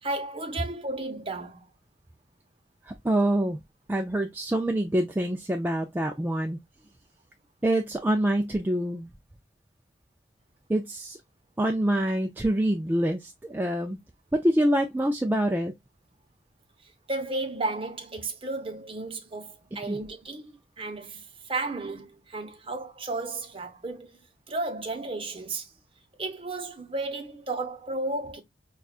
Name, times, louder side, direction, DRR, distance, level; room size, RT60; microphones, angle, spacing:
voice 1, 0.0-1.7 16.8-24.2 24.5-25.7 26.2-28.4, right 2 dB, 30° right, 0.8 m, -33 dB
voice 2, 2.8-3.6 3.9-6.6 7.6-9.1 10.7-11.2 11.6-14.0 14.3-15.7 19.7-20.0, right 1 dB, 10° right, 0.3 m, -26 dB
5.5 x 2.3 x 2.4 m
head